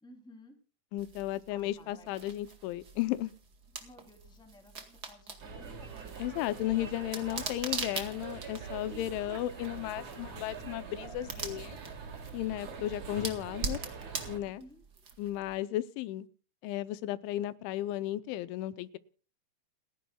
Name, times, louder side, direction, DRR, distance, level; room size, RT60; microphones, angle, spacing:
voice 1, 0.0-0.6 1.3-2.2 3.8-6.0 14.6-14.9, left 1 dB, ahead, 1.9 m, -56 dB
voice 2, 0.9-3.3 6.2-11.8 12.3-13.8 14.3-14.6 15.2-16.3 16.6-19.0, left 14 dB, 85° left, 3.0 m, -34 dB
sound 1, 1.0-15.5, right 4 dB, 65° right, 0.9 m, -43 dB
sound 2, 5.4-14.4, right 5 dB, 40° right, 2.9 m, -44 dB
29.5 x 10.5 x 2.3 m
omnidirectional pair, 5.4 m